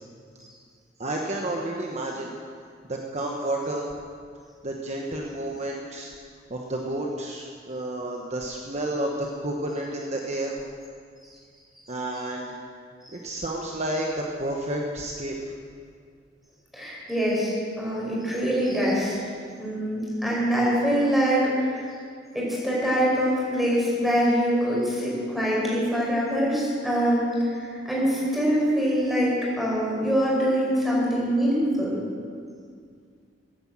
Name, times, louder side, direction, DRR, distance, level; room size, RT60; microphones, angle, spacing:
voice 1, 1.0-2.3 2.9-3.9 4.6-6.1 6.5-10.5 11.9-12.6 13.2-15.3, right 1 dB, 40° right, -1 dB, 1.2 m, -30 dB
voice 2, 16.7-19.2 19.6-21.9 22.3-31.9, equal, ahead, -6 dB, 5.0 m, -24 dB
14.5 x 9.8 x 7.6 m, 2.1 s
head